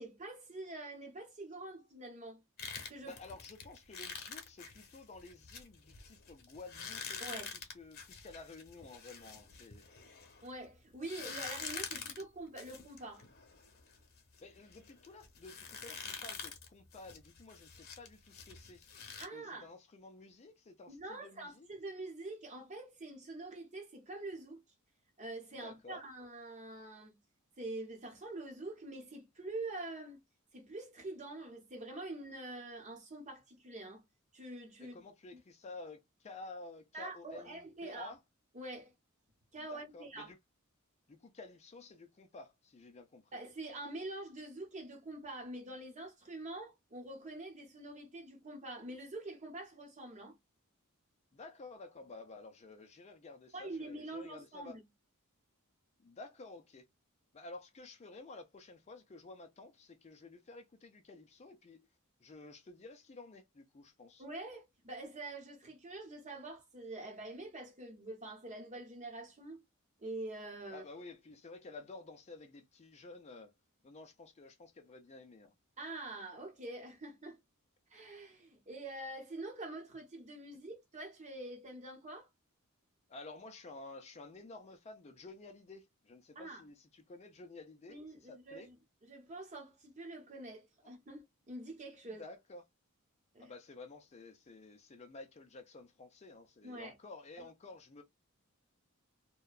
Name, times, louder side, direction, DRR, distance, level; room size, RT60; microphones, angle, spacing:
voice 1, 0.0-2.4 2.9-3.1 7.2-7.5 10.4-13.2 19.2-19.7 20.9-24.6 25.2-27.2 27.6-30.2 30.5-34.0 34.3-35.0 35.3-35.4 36.9-38.1 38.5-38.9 39.5-40.3 43.3-50.4 53.5-54.8 64.2-69.6 70.0-70.8 75.8-77.4 77.9-82.3 86.3-86.7 87.9-88.7 89.1-92.2 93.3-93.5 96.6-96.9, right 2 dB, 35° right, 0.9 m, -45 dB
sound 1, 2.6-10.5 11.0-19.3, left 6 dB, 45° left, 0.9 m, -46 dB
voice 2, 3.0-9.9 14.4-18.9 19.3-21.7 25.5-26.0 34.8-38.2 39.7-40.4 41.1-43.4 51.3-54.8 56.0-56.9 57.3-61.9 62.2-64.2 70.7-73.5 73.8-75.5 83.1-88.7 92.1-92.6 93.4-98.0, left 3 dB, 30° left, 0.4 m, -52 dB
2.8 x 2.1 x 2.3 m
head